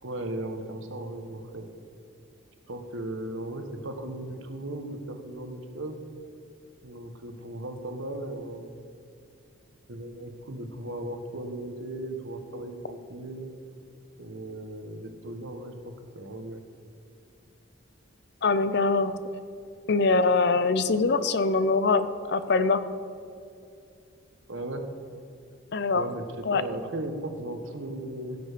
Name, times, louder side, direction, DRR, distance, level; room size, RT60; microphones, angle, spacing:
voice 1, 0.0-1.7 2.7-6.0 6.8-8.8 9.9-13.5 14.2-16.6 24.5-24.8 25.9-28.4, right 1 dB, 75° right, 6 dB, 1.2 m, -37 dB
voice 2, 18.4-19.2 19.9-22.8 25.7-26.1 26.4-26.6, left 3 dB, 60° left, 12 dB, 0.6 m, -23 dB
16.5 x 7.0 x 5.1 m, 2.5 s
head